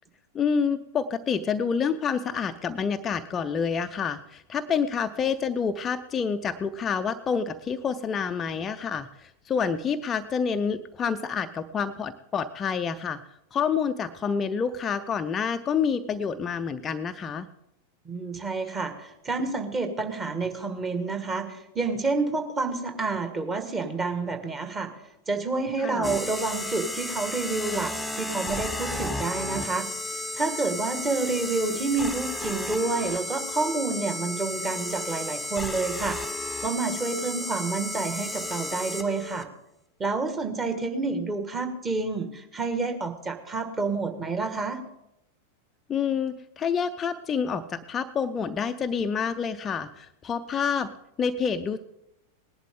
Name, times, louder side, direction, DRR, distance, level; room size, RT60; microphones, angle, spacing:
voice 1, 0.3-13.2 13.5-17.5 25.8-26.1 45.9-50.9 51.2-51.8, left 6 dB, 25° left, 8 dB, 0.5 m, -28 dB
voice 2, 18.1-24.9 25.3-29.9 30.3-36.2 36.6-39.5 40.0-44.8, right 3 dB, 20° right, 6 dB, 1.8 m, -29 dB
sound 1, 26.0-39.4, left 1 dB, ahead, 0.9 m, -33 dB
19.0 x 11.0 x 3.7 m, 0.82 s
figure-of-eight pair, 90°, 0 cm